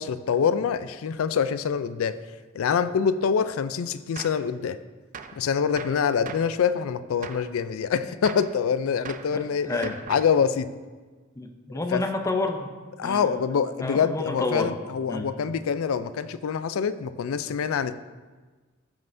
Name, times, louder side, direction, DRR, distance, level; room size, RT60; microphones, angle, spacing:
voice 1, 0.0-2.2 2.5-4.8 5.4-10.7 11.9-12.0 13.0-18.0, left 6 dB, 90° left, 14 dB, 0.4 m, -25 dB
Gunshot gunfire, 4.2-4.5 5.1-5.4 5.8-6.6 7.2-7.5 8.2-8.6 9.1-9.4 9.8-10.4, right 6 dB, 40° right, 0.4 m, -40 dB
voice 2, 9.3-10.0 11.4-12.7 13.0-14.7 15.1-15.3, left 2 dB, 15° left, 5 dB, 0.6 m, -30 dB
14.0 x 5.5 x 2.6 m, 1.4 s
head